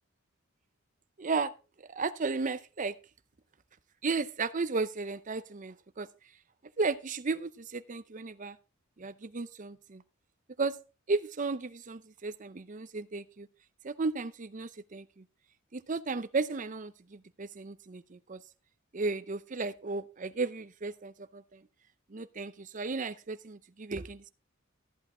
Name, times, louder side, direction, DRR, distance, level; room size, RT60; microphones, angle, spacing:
voice 1, 1.2-1.5 1.9-2.9 4.0-6.1 6.8-8.6 9.0-10.0 10.6-10.8 11.1-13.5 13.8-15.2 15.7-18.4 18.9-21.6 22.1-24.3, right 4 dB, 40° right, 14 dB, 0.6 m, -34 dB
14.0 x 8.4 x 3.7 m, 0.33 s
head